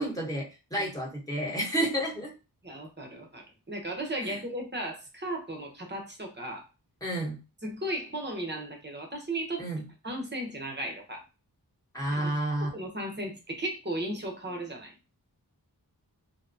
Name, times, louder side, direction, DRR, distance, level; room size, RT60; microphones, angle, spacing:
voice 1, 0.0-2.3 4.2-4.4 7.0-7.4 9.6-9.8 11.9-12.7, right 1 dB, 10° left, -2 dB, 1.2 m, -30 dB
voice 2, 2.6-6.7 7.6-9.6 10.0-11.2 12.1-14.9, right 1 dB, 25° right, 1 dB, 0.9 m, -36 dB
2.8 x 2.2 x 2.6 m, 0.29 s
wide cardioid pair, 55°, 40 cm